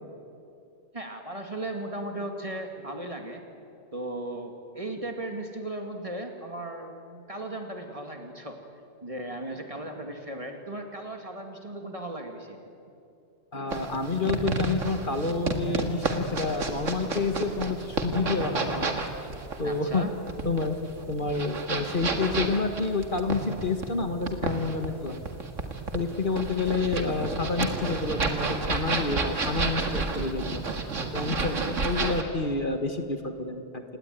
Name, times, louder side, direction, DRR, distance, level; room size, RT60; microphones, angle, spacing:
voice 1, 0.9-3.4 3.9-8.6 9.0-12.6 19.6-20.1, right 1 dB, 30° right, 4 dB, 2.4 m, -36 dB
voice 2, 13.5-18.9 19.6-20.1 20.4-20.8 21.1-25.2 25.9-30.6 31.1-33.8, left 3 dB, 45° left, 6 dB, 1.7 m, -29 dB
sound 1, 13.7-32.2, right 3 dB, 85° right, 2.3 m, -31 dB
28.5 x 19.0 x 9.3 m, 2.6 s
omnidirectional pair, 1.3 m